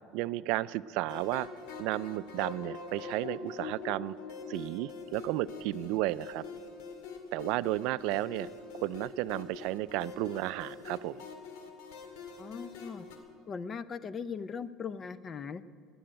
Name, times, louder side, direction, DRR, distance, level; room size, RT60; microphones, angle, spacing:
voice 1, 0.1-1.5 1.8-4.2 4.5-6.4 7.3-8.5 8.8-11.2, right 17 dB, 75° right, 18 dB, 0.3 m, -33 dB
sound 1, 1.1-13.2, left 5 dB, 85° left, 2.0 m, -44 dB
voice 2, 12.4-13.1 13.5-15.6, left 6 dB, 35° left, 15 dB, 0.6 m, -39 dB
18.0 x 7.8 x 8.8 m, 2.2 s
supercardioid pair, 110°, 0 cm